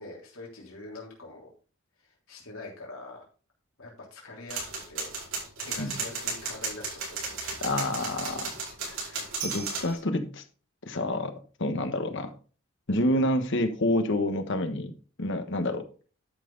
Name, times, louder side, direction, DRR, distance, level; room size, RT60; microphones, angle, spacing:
voice 1, 0.0-1.5 2.0-3.2 3.8-5.1 5.6-7.7, left 2 dB, 85° left, -2 dB, 3.3 m, -44 dB
sound 1, 4.5-9.9, right 4 dB, 80° right, 5.7 m, -34 dB
voice 2, 7.6-8.5 8.8-9.0 9.4-10.4 10.9-11.3 11.6-12.3 12.9-14.9 15.2-15.8, left 1 dB, 65° left, 8 dB, 1.4 m, -28 dB
12.0 x 5.8 x 4.0 m, 0.38 s
head